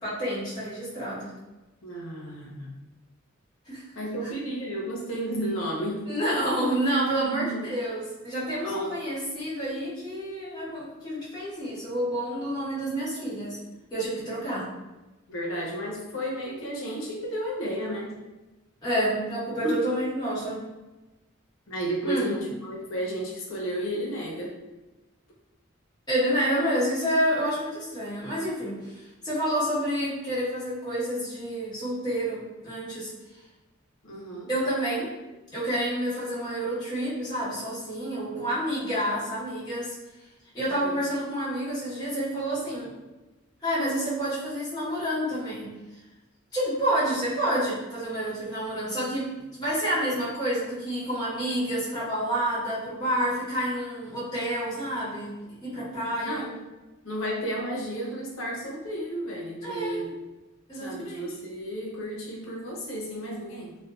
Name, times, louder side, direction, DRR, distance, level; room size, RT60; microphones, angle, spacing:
voice 1, 0.0-1.3 3.7-3.8 4.2-4.3 6.1-13.6 13.9-14.7 18.8-20.6 22.0-22.3 26.1-29.0 29.2-33.1 34.5-35.1 35.5-39.9 40.5-42.9 43.6-45.7 46.5-55.3 55.6-56.5 59.6-60.1 60.7-61.3, right 1 dB, 20° left, -11 dB, 1.1 m, -29 dB
voice 2, 1.8-2.8 4.0-6.1 7.2-7.6 8.6-8.9 15.3-18.2 19.6-19.8 21.7-24.5 34.0-34.5 40.6-41.0 56.2-56.6 57.0-60.1 60.7-63.8, right 1 dB, 80° left, -2 dB, 0.6 m, -32 dB
2.5 x 2.1 x 2.3 m, 1.1 s
head